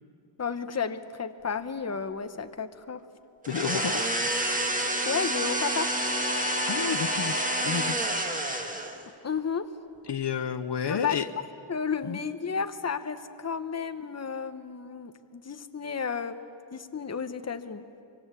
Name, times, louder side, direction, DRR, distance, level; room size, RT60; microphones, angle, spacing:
voice 1, 0.4-3.0 5.1-5.9 9.2-9.7 10.9-11.2 11.7-16.4 16.7-17.8, left 6 dB, 35° left, 9 dB, 1.0 m, -32 dB
sound 1, 3.4-9.1, right 1 dB, 15° right, 1.8 m, -28 dB
voice 2, 3.5-4.1 6.7-8.0 10.1-11.3 12.0-12.2, left 7 dB, 65° left, 9 dB, 0.9 m, -31 dB
24.5 x 24.5 x 8.3 m, 2.6 s
wide cardioid pair, 140°, 45 cm